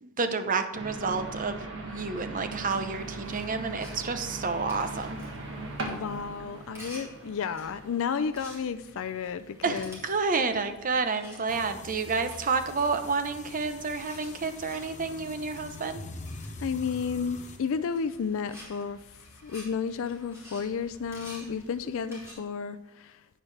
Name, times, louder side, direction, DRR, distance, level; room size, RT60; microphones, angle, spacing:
voice 1, 0.0-5.2 9.6-16.0, right 4 dB, 40° right, 0.7 m, -30 dB
sound 1, 0.7-8.0, right 2 dB, 60° right, 1.7 m, -39 dB
sound 2, 2.7-22.3, equal, 15° right, 3.9 m, -52 dB
voice 2, 5.9-10.0 16.6-19.0 19.4-23.2, left 6 dB, 65° left, 0.4 m, -32 dB
sound 3, 11.5-17.6, left 2 dB, 35° left, 0.9 m, -44 dB
11.0 x 8.8 x 3.3 m
head